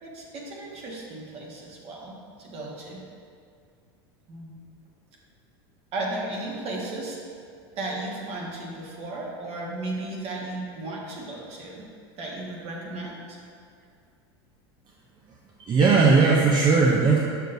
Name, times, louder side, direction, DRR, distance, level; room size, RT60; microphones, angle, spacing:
voice 1, 0.0-3.0 4.3-4.6 5.9-7.2 7.7-11.9 12.2-13.4, right 2 dB, 50° right, -3 dB, 1.6 m, -35 dB
voice 2, 15.6-17.2, right 4 dB, 35° right, -2 dB, 0.7 m, -18 dB
6.6 x 6.4 x 2.7 m, 2.3 s
hypercardioid pair, 95°, 14 cm